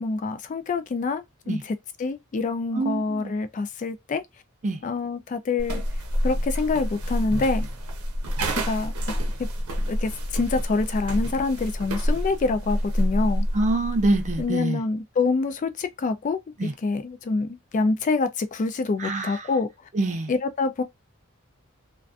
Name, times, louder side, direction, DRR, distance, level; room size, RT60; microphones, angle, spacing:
voice 1, 0.0-4.2 4.8-5.8 6.2-7.6 8.7-8.9 9.9-13.4 14.4-19.7 20.3-20.8, left 3 dB, 35° left, 0.3 m, -26 dB
voice 2, 2.7-3.3 4.6-4.8 13.5-14.8 16.6-16.7 19.0-19.4 19.9-20.3, right 2 dB, 35° right, 0.4 m, -25 dB
sound 1, 5.6-14.5, equal, 85° right, 0.7 m, -28 dB
2.4 x 2.2 x 2.4 m
head